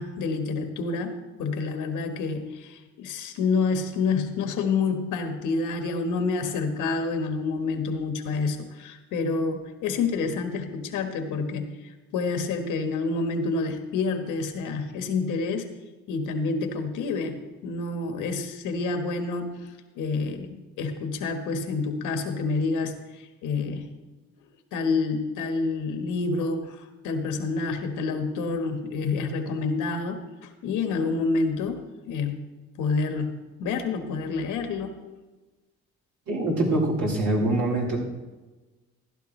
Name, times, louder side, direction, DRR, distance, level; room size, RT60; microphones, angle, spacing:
voice 1, 0.0-11.7 12.1-15.7 16.1-19.6 19.9-23.0 23.4-23.9 24.7-26.8 27.0-30.2 30.6-32.4 32.8-34.9, left 4 dB, 90° left, 6 dB, 1.4 m, -28 dB
voice 2, 36.3-38.0, right 1 dB, 75° right, -3 dB, 4.4 m, -24 dB
15.0 x 11.5 x 3.2 m, 1.2 s
cardioid pair, 90°, 30 cm